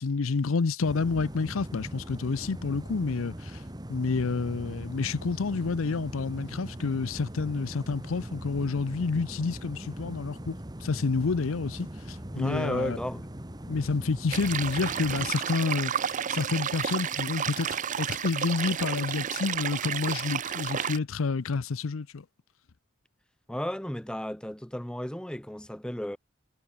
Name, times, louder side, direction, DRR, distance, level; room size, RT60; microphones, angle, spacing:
voice 1, 0.0-3.6 3.9-10.6 10.8-13.0 13.7-22.2, left 4 dB, 80° left, 0.6 m, -29 dB
sound 1, 0.8-15.3, right 1 dB, 20° right, 1.6 m, -41 dB
voice 2, 12.3-13.3 23.5-26.2, equal, 5° left, 1.0 m, -33 dB
sound 2, 14.3-21.0, right 8 dB, 40° right, 0.5 m, -31 dB
head